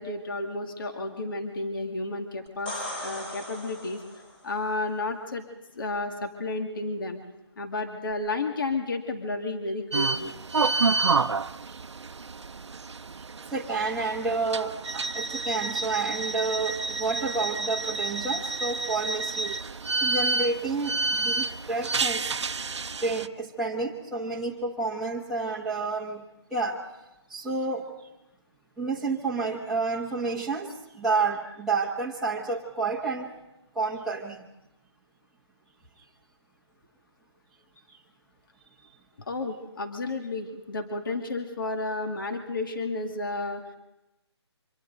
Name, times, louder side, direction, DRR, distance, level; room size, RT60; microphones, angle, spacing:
voice 1, 0.0-4.0 4.4-5.4 5.7-7.2 7.6-10.3 39.3-43.6, left 2 dB, 50° left, 4 dB, 2.2 m, -32 dB
sound 1, 2.5-4.4 8.1-8.2, left 1 dB, 20° left, 3.7 m, -37 dB
sound 2, 9.9-23.3, right 4 dB, 85° right, 0.8 m, -29 dB
voice 2, 13.5-19.6 20.0-22.2 23.0-26.2 26.5-26.8 27.3-27.9 28.8-33.3 33.7-34.4, right 3 dB, ahead, -6 dB, 1.3 m, -30 dB
28.0 x 25.5 x 4.0 m, 0.91 s
hypercardioid pair, 170°, 14 cm